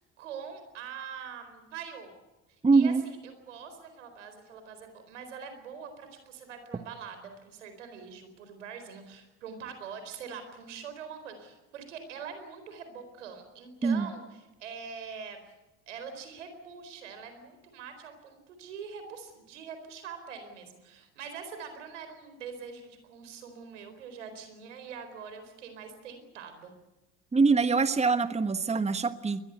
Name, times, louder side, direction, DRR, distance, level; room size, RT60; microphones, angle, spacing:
voice 1, 0.0-2.1 2.7-15.4 15.9-26.7, right 6 dB, 85° right, 8 dB, 4.4 m, -44 dB
voice 2, 2.6-3.0 13.8-14.1 27.3-29.4, right 4 dB, 20° right, 11 dB, 1.4 m, -24 dB
23.0 x 19.5 x 8.0 m, 1.1 s
hypercardioid pair, 60°, 36 cm